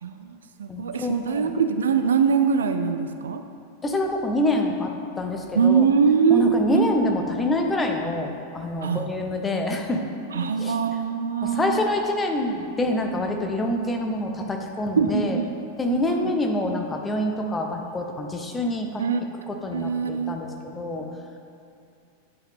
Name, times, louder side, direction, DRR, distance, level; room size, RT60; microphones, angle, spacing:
voice 1, 0.0-3.4 5.5-6.9 8.8-9.1 10.3-11.8 15.0-15.5 19.0-19.2 19.7-20.4, right 6 dB, 65° right, 8 dB, 0.4 m, -22 dB
voice 2, 0.7-1.5 3.8-5.8 6.3-10.0 10.3-10.8 11.4-15.4 15.8-19.0 19.5-21.1, left 1 dB, 15° left, 3 dB, 0.8 m, -26 dB
10.0 x 5.7 x 3.6 m, 2.5 s
figure-of-eight pair, 90°, 0 cm